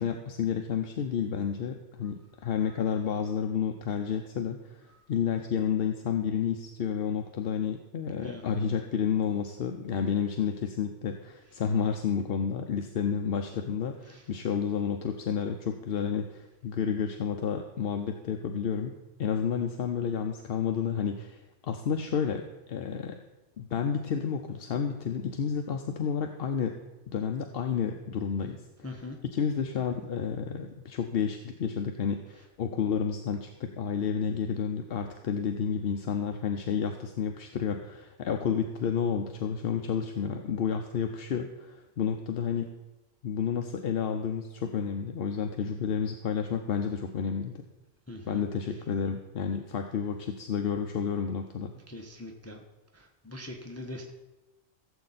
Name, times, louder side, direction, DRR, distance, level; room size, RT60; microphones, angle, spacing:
voice 1, 0.0-18.9 19.2-23.2 23.6-26.8 27.1-42.7 43.2-47.6 48.3-51.7, left 7 dB, 55° left, 5 dB, 0.8 m, -31 dB
voice 2, 28.8-29.2 48.1-48.4 51.9-52.6 52.9-54.1, left 1 dB, 15° left, 3 dB, 0.8 m, -42 dB
16.0 x 7.6 x 4.1 m, 1.0 s
omnidirectional pair, 1.3 m